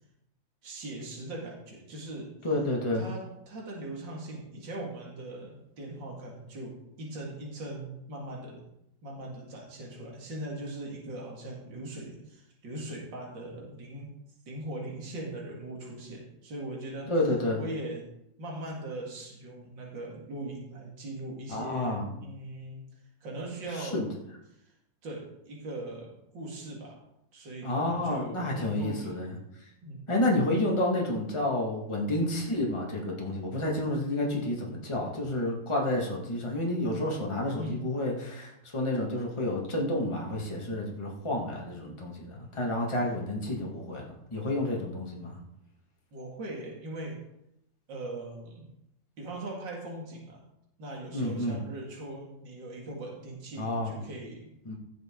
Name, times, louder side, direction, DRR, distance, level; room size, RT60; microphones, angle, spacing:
voice 1, 0.6-2.3 2.9-8.6 9.0-14.1 14.5-17.1 17.6-18.1 18.4-22.8 23.2-24.0 24.5-24.7 25.0-27.0 27.3-29.1 29.8-30.1 37.6-37.8 46.1-47.2 47.9-48.7 49.2-50.4 50.8-54.5, right 1 dB, 70° right, -2 dB, 2.9 m, -40 dB
voice 2, 2.4-3.1 17.1-17.6 21.5-22.1 23.7-24.1 27.6-29.3 30.1-45.4 51.1-51.6 53.6-54.0 54.7-54.8, left 1 dB, 15° left, -2 dB, 2.0 m, -30 dB
16.5 x 6.8 x 3.9 m, 0.81 s
omnidirectional pair, 2.1 m